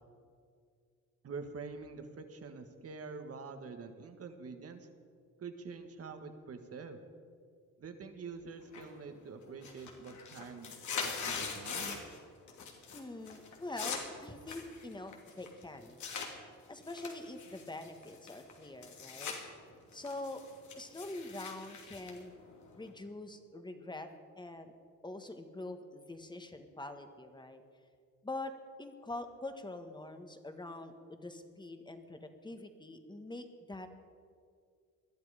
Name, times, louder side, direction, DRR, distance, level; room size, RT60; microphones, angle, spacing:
voice 1, 1.2-4.9 5.4-7.0 7.8-10.7 11.0-12.0, right 4 dB, 50° right, 7 dB, 1.8 m, -46 dB
sound 1, 8.7-9.2 9.5-12.2 12.5-13.0 13.3-16.3 16.8-19.4 19.7-22.9, left 5 dB, 70° left, 2.8 m, -42 dB
voice 2, 12.9-16.0 16.7-19.4 19.9-20.4 20.8-22.3 22.7-24.1 24.4-24.7 25.0-27.6 28.2-28.5 28.8-33.9, left 2 dB, 15° left, 7 dB, 1.6 m, -44 dB
20.5 x 12.0 x 5.1 m, 2.2 s
cardioid pair, 90°, 30 cm